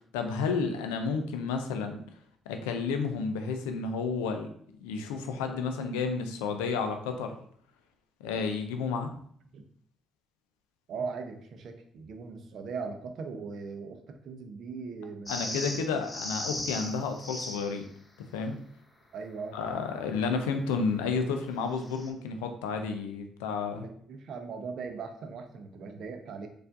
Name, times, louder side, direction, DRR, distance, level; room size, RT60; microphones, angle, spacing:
voice 1, 0.1-2.0 2.5-4.5 4.8-7.3 8.2-9.1 15.3-17.8 18.3-18.6 19.5-23.9, left 5 dB, 85° left, 6 dB, 0.4 m, -31 dB
voice 2, 10.9-16.0 19.1-19.6 23.7-26.5, right 5 dB, 65° right, 5 dB, 0.5 m, -39 dB
sound 1, 15.3-17.8 21.8-22.1, left 1 dB, 30° left, 0.7 m, -37 dB
4.3 x 2.4 x 2.4 m, 0.62 s
hypercardioid pair, 55°, 0 cm